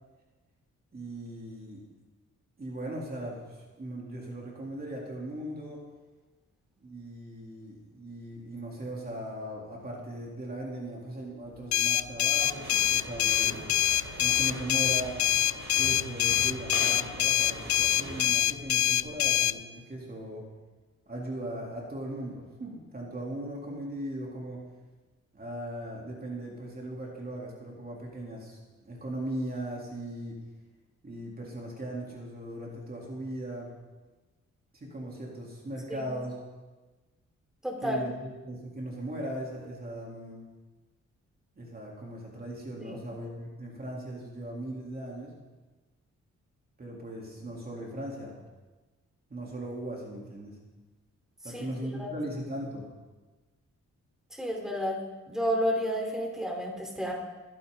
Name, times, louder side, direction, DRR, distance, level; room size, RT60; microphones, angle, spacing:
voice 1, 0.9-1.8 2.6-5.8 6.8-13.7 14.2-15.2 15.7-20.5 21.1-24.6 25.3-30.4 31.0-33.7 34.7-36.4 37.8-40.4 41.6-45.4 46.8-48.4 49.3-50.6 51.4-52.8, right 1 dB, 30° right, -3 dB, 3.5 m, -38 dB
sound 1, 11.7-19.6, left 12 dB, 70° left, 0.5 m, -25 dB
sound 2, 12.4-18.3, right 3 dB, 85° right, 5.6 m, -42 dB
voice 2, 37.6-38.0 42.8-43.0 51.5-51.6 52.0-52.1 54.4-55.0 55.3-57.1, equal, ahead, -1 dB, 4.0 m, -30 dB
22.0 x 16.0 x 4.0 m, 1.2 s
wide cardioid pair, 130°, 30 cm